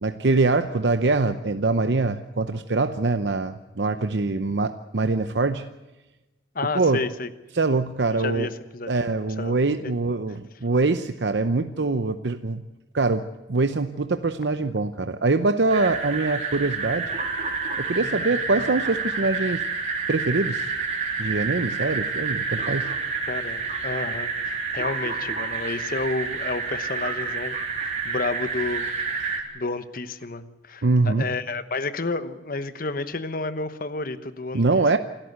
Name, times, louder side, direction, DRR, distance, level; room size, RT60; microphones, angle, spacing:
voice 1, 0.0-5.6 6.7-7.0 7.5-8.5 8.9-12.6 12.9-13.2 13.5-17.1 17.8-19.6 20.1-20.7 21.2-22.9 30.8-31.3 34.5-35.0, right 3 dB, 75° right, 9 dB, 0.8 m, -23 dB
voice 2, 6.5-7.3 8.2-8.9 9.4-9.5 9.8-9.9 18.0-18.2 23.3-28.9 29.2-34.8, left 3 dB, 50° left, 12 dB, 1.1 m, -31 dB
sound 1, 15.7-29.4, right 4 dB, 40° right, 3.4 m, -29 dB
27.5 x 13.5 x 8.1 m, 1.1 s
head